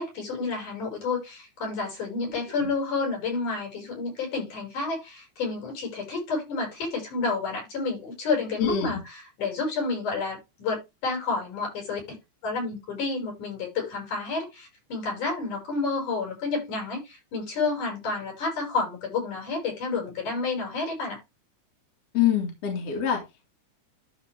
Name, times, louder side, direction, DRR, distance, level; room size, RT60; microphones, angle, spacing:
voice 1, 0.0-12.2 12.4-21.2, left 4 dB, 85° left, 7.3 m, -30 dB
voice 2, 8.6-9.0 22.1-23.2, left 8 dB, 55° left, 3.3 m, -25 dB
12.5 x 4.7 x 3.5 m
omnidirectional pair, 3.5 m